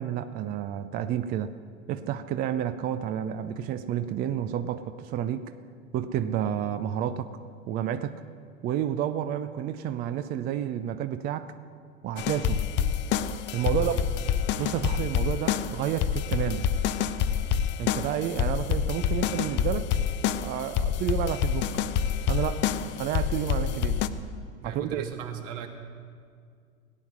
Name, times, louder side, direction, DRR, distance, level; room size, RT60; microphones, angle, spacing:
voice 1, 0.0-1.6 1.9-5.5 5.9-7.3 7.7-8.2 8.6-11.5 12.0-12.7 13.5-14.0 14.6-16.7 17.8-20.0 20.4-21.7 22.3-22.7 23.0-24.0 24.6-25.0, right 10 dB, 25° right, 11 dB, 0.4 m, -30 dB
sound 1, 12.2-24.1, left 8 dB, 25° left, 0.5 m, -27 dB
voice 2, 13.6-14.1 24.6-25.7, right 9 dB, 60° right, 3 dB, 2.0 m, -38 dB
18.0 x 9.4 x 6.1 m, 2.1 s
hypercardioid pair, 100°, 41 cm